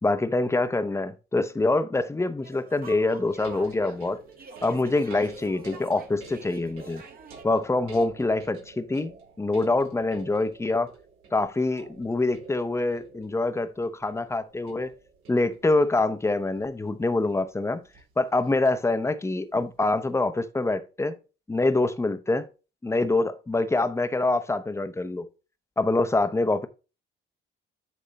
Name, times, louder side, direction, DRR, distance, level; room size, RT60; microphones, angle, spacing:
voice 1, 0.0-4.2 4.6-7.0 7.4-10.9 11.3-14.9 15.3-17.8 18.2-21.2 21.5-22.4 22.8-25.3 25.8-26.7, left 2 dB, 15° left, 0.9 m, -25 dB
sound 1, 2.4-7.4, right 4 dB, 45° right, 1.5 m, -47 dB
sound 2, 3.3-18.7 19.7-19.8, right 4 dB, 90° right, 4.4 m, -49 dB
10.0 x 3.6 x 4.1 m
cardioid pair, 100°, 21 cm